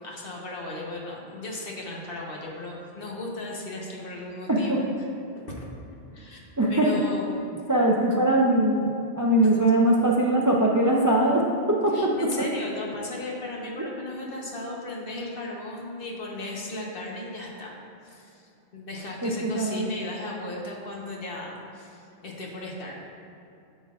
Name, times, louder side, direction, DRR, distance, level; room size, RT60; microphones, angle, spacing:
voice 1, 0.0-4.8 5.4-5.7 6.1-7.3 9.4-9.5 11.9-17.8 18.0-23.0, left 2 dB, 60° left, -2 dB, 1.3 m, -36 dB
voice 2, 6.6-6.9 7.7-12.2 19.2-19.9, right 1 dB, 25° right, -2 dB, 0.4 m, -22 dB
9.8 x 7.3 x 2.4 m, 2.6 s
omnidirectional pair, 1.1 m